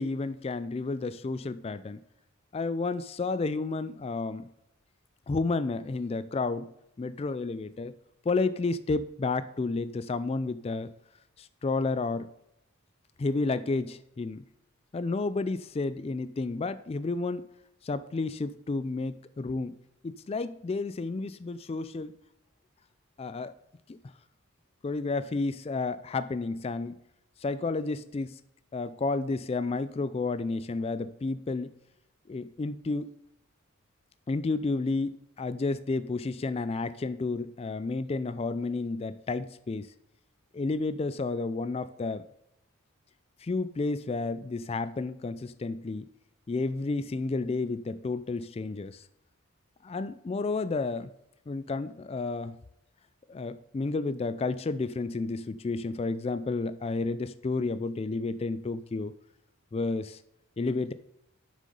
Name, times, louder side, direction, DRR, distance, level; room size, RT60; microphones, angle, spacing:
voice 1, 0.0-2.0 2.5-4.5 5.3-6.7 7.0-7.9 8.3-10.9 11.4-12.3 13.2-14.4 14.9-17.5 17.8-19.8 20.0-22.1 23.2-23.6 23.9-24.0 24.8-27.0 27.4-28.4 28.7-31.7 32.3-33.1 34.3-35.1 35.4-39.9 40.5-42.2 43.4-46.0 46.5-49.0 49.8-51.1 51.5-52.6 53.3-59.1 59.7-60.2 60.6-60.9, left 3 dB, 30° left, 14 dB, 0.3 m, -31 dB
7.6 x 6.5 x 5.4 m, 0.81 s
head